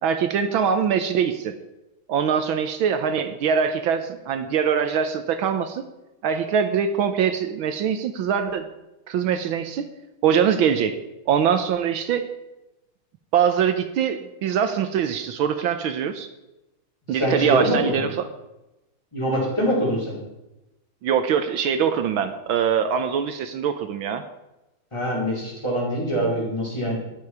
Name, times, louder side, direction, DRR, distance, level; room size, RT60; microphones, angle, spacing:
voice 1, 0.0-1.5 2.1-5.8 6.2-8.7 9.1-9.9 10.2-11.0 11.3-12.3 13.3-16.3 17.1-18.3 21.0-24.2, right 7 dB, 75° right, 9 dB, 1.6 m, -23 dB
voice 2, 17.2-18.0 19.1-20.1 24.9-27.0, equal, 10° left, -5 dB, 4.8 m, -24 dB
13.5 x 11.0 x 4.8 m, 0.99 s
omnidirectional pair, 2.3 m